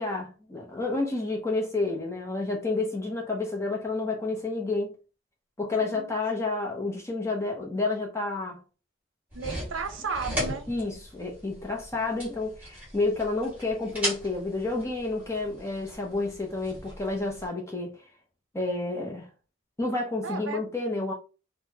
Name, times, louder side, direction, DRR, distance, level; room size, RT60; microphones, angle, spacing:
voice 1, 0.0-4.9 5.6-8.6 10.7-17.9 18.5-19.3 19.8-21.1, left 3 dB, 15° left, 0.6 m, -30 dB
voice 2, 5.8-6.1 9.3-10.7 20.2-20.6, right 5 dB, 70° right, 0.6 m, -34 dB
sound 1, 9.3-17.5, equal, 5° right, 1.8 m, -38 dB
3.9 x 2.0 x 2.7 m
head